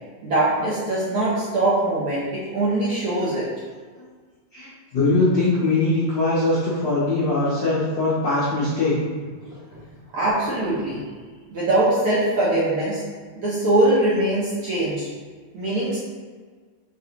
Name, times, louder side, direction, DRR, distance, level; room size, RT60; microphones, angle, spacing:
voice 1, 0.2-2.2 2.5-3.5 10.1-11.0 11.5-13.0 13.4-15.1 15.5-16.0, right 1 dB, 70° right, -8 dB, 1.3 m, -22 dB
voice 2, 4.5-9.0 9.4-9.6, left 2 dB, 90° left, -9 dB, 0.9 m, -21 dB
4.5 x 4.1 x 2.9 m, 1.5 s
omnidirectional pair, 3.4 m